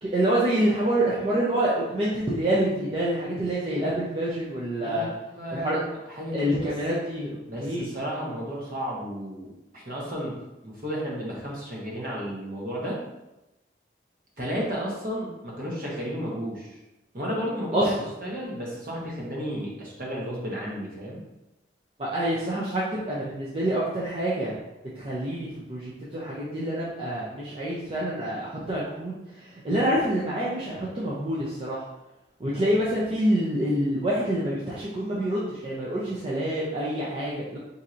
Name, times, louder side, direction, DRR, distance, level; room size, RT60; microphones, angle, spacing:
voice 1, 0.0-5.1 5.5-5.8 6.3-7.3 7.6-7.9 17.7-18.1 22.0-24.6 25.0-31.9 32.4-37.6, right 1 dB, 30° right, -7 dB, 0.5 m, -27 dB
voice 2, 4.8-6.7 7.5-10.4 10.6-13.0 14.4-16.8 17.1-21.2, equal, 50° right, -4 dB, 0.9 m, -33 dB
4.3 x 2.7 x 2.5 m, 0.96 s
head